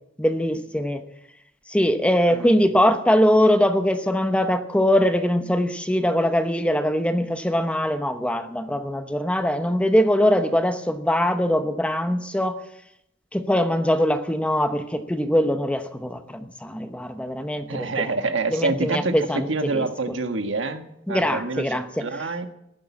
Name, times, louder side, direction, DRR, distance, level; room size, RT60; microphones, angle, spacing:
voice 1, 0.2-1.0 1.7-12.6 13.3-18.1 18.5-19.9 21.1-22.0, equal, 5° left, 8 dB, 0.9 m, -22 dB
voice 2, 2.3-2.7 17.7-22.5, right 3 dB, 80° right, 7 dB, 1.4 m, -27 dB
14.0 x 11.5 x 7.1 m, 0.80 s
head